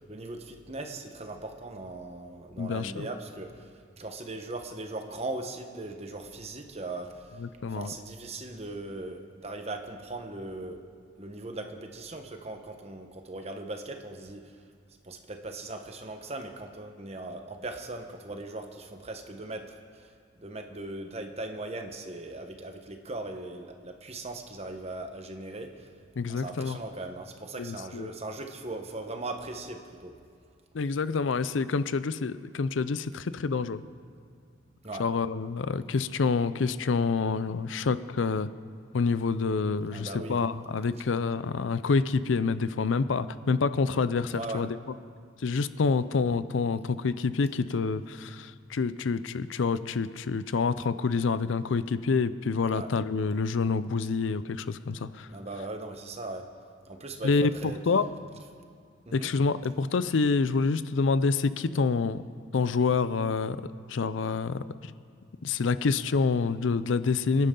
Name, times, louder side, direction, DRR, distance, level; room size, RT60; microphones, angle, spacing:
voice 1, 0.1-3.7 4.0-7.2 7.7-10.8 11.2-14.5 15.0-19.6 19.9-20.1 20.4-25.9 26.3-30.1 34.8-35.0 39.9-40.4 44.3-44.6 52.7-52.9 55.3-56.4 56.9-57.8 59.1-59.3, right 2 dB, 35° right, 5 dB, 1.1 m, -39 dB
voice 2, 2.6-3.1 7.4-7.9 26.2-26.8 27.6-28.1 30.7-33.8 35.0-38.5 38.9-44.8 45.4-55.3 57.2-58.1 59.1-62.2 62.5-63.6 63.9-64.9 65.4-67.5, left 4 dB, 80° left, 14 dB, 0.5 m, -27 dB
25.5 x 10.5 x 3.8 m, 2.1 s
head